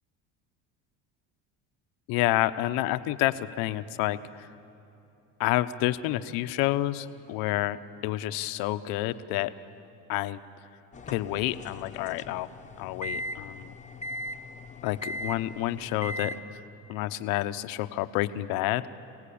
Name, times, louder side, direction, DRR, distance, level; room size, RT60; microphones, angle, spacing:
voice 1, 2.1-4.5 5.4-7.8 8.0-9.5 10.1-10.4 11.1-12.5 12.8-13.7 14.8-16.3 16.9-18.8, left 15 dB, 75° left, 11 dB, 0.9 m, -29 dB
sound 1, 10.9-16.4, left 1 dB, 20° left, 1.1 m, -39 dB
27.0 x 17.5 x 8.6 m, 3.0 s
supercardioid pair, 110°, 36 cm